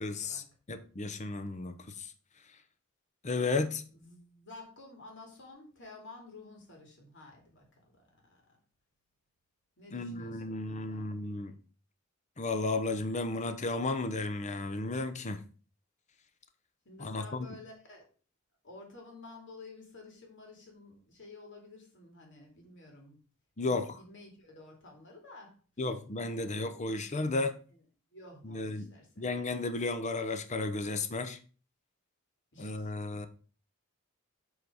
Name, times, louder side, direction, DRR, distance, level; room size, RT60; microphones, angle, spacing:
voice 1, 0.0-2.1 3.2-3.8 9.9-11.5 12.4-15.4 17.0-17.5 23.6-24.0 25.8-27.5 28.4-31.4 32.6-33.3, left 3 dB, 35° left, 0.8 m, -34 dB
voice 2, 3.9-8.6 9.8-11.2 16.8-18.0 18.6-23.2 23.6-25.6 28.1-29.3 32.5-33.3, left 2 dB, 60° left, 2.6 m, -52 dB
7.8 x 4.0 x 4.8 m
head